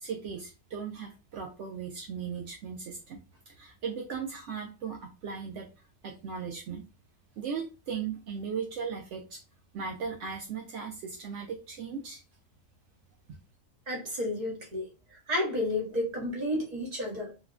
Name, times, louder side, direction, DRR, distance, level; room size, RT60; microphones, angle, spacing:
voice 1, 0.0-3.2 3.5-5.7 6.0-6.8 7.4-9.4 9.7-12.2, right 6 dB, 80° right, 0.6 m, -37 dB
voice 2, 13.9-14.9 15.3-17.4, left 1 dB, 35° right, 0.8 m, -31 dB
3.5 x 2.0 x 2.3 m
omnidirectional pair, 1.8 m